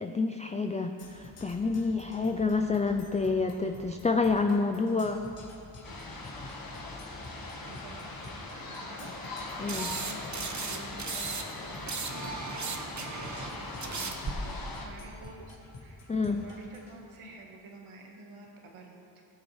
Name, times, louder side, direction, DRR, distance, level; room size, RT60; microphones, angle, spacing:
voice 1, 0.0-5.2 9.6-9.9 16.1-16.4, left 4 dB, 15° left, 5 dB, 0.3 m, -28 dB
Percussion, 1.0-17.0, left 2 dB, 85° left, 1.8 m, -49 dB
sound 1, 5.8-14.9, left 2 dB, 45° left, 1.5 m, -41 dB
voice 2, 7.6-19.0, right 2 dB, 75° right, 0 dB, 1.5 m, -50 dB
sound 2, 9.7-11.4 11.7-14.3, right 4 dB, 35° right, 1.0 m, -36 dB
17.0 x 7.1 x 3.2 m, 2.6 s
cardioid pair, 70°, 50 cm